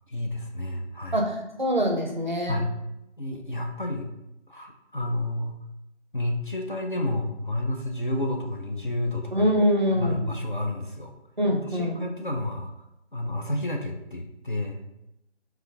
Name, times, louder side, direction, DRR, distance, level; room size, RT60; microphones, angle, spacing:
voice 1, 0.1-1.2 2.5-2.7 3.2-4.1 4.5-5.5 6.1-9.5 9.9-11.1 11.5-12.7 13.1-14.8, left 1 dB, 50° left, 2 dB, 0.4 m, -30 dB
voice 2, 1.1-2.6 9.3-10.2 11.4-12.0, equal, 45° right, 1 dB, 0.4 m, -24 dB
3.5 x 2.2 x 3.5 m, 0.86 s
figure-of-eight pair, 165°, 34 cm